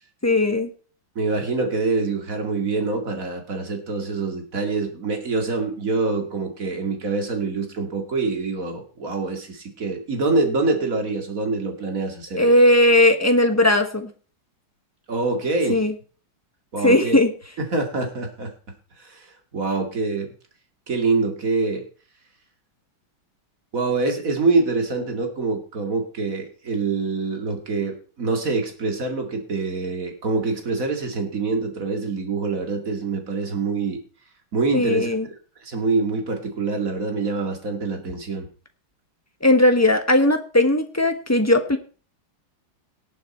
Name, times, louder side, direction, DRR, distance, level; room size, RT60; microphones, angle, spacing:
voice 1, 0.2-0.7 12.4-14.1 15.7-15.9 16.8-17.3 34.7-35.3 39.4-41.8, left 1 dB, 10° left, 7 dB, 0.9 m, -18 dB
voice 2, 1.2-12.6 15.1-15.8 16.7-17.2 17.6-18.5 19.0-20.3 20.9-21.8 23.7-34.0 34.5-35.2 35.6-38.5, right 3 dB, 40° right, 4 dB, 2.7 m, -25 dB
18.5 x 7.1 x 4.4 m, 0.38 s
omnidirectional pair, 2.3 m